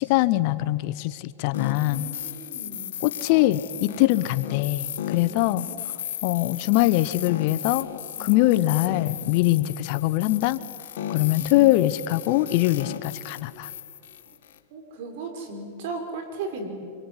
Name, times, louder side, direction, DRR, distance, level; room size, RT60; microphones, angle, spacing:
voice 1, 0.0-2.0 3.0-5.7 6.2-7.9 8.2-10.6 11.1-13.7, left 16 dB, 55° left, 13 dB, 1.0 m, -22 dB
sound 1, 1.5-14.6, left 11 dB, 75° left, 1.5 m, -35 dB
voice 2, 1.7-3.0 3.8-4.2 5.3-5.8 8.2-8.3 9.2-9.4 11.0-11.2 14.7-16.7, right 3 dB, 65° right, 5 dB, 5.6 m, -37 dB
26.0 x 23.0 x 9.9 m, 2.4 s
hypercardioid pair, 125°, 0 cm